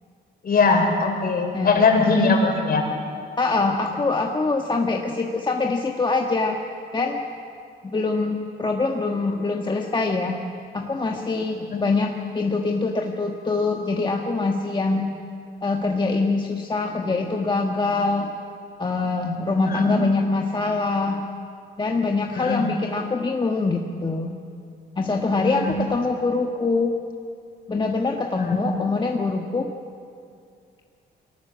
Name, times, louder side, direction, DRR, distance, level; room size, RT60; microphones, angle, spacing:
voice 1, 0.4-2.8 11.6-11.8 19.6-20.0 22.3-22.7 25.4-25.7 28.4-28.7, left 4 dB, 50° left, 3 dB, 4.4 m, -21 dB
voice 2, 3.4-6.6 6.9-7.2 7.8-10.4 10.7-15.1 15.6-18.3 18.8-21.2 21.8-24.4 25.0-26.9 27.7-29.7, left 3 dB, 25° left, 2 dB, 1.4 m, -24 dB
23.0 x 18.0 x 7.4 m, 2.3 s
cardioid pair, 90°, 20 cm